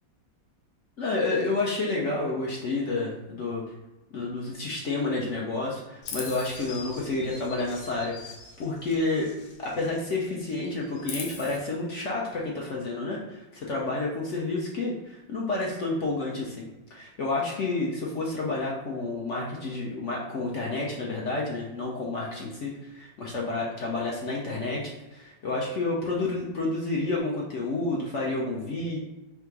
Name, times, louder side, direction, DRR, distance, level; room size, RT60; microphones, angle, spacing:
voice 1, 1.0-3.6 4.1-8.1 8.6-16.7 16.9-29.0, left 3 dB, 60° left, -3 dB, 0.8 m, -30 dB
Chirp tweet, 6.0-10.1 10.3-11.6, left 4 dB, 90° left, 1.5 m, -42 dB
3.4 x 2.8 x 4.6 m, 1.1 s
omnidirectional pair, 2.0 m